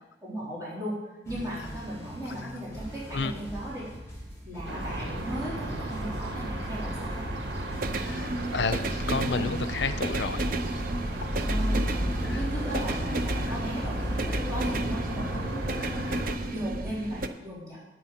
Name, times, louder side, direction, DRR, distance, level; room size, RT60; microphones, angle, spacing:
voice 1, 0.2-3.9 4.4-7.3 11.4-16.1 16.4-17.8, right 1 dB, 20° right, -8 dB, 3.8 m, -37 dB
sound 1, 1.2-14.2, equal, 15° left, 2.7 m, -42 dB
sound 2, 2.5-17.3, right 2 dB, 50° right, 0.6 m, -34 dB
sound 3, 4.6-16.3, equal, 80° right, 1.9 m, -33 dB
voice 2, 8.0-10.5 12.2-12.4 12.7-12.9 13.5-13.6 16.1-16.2, left 4 dB, 75° left, 12 dB, 0.6 m, -31 dB
9.7 x 7.8 x 5.8 m, 0.98 s
head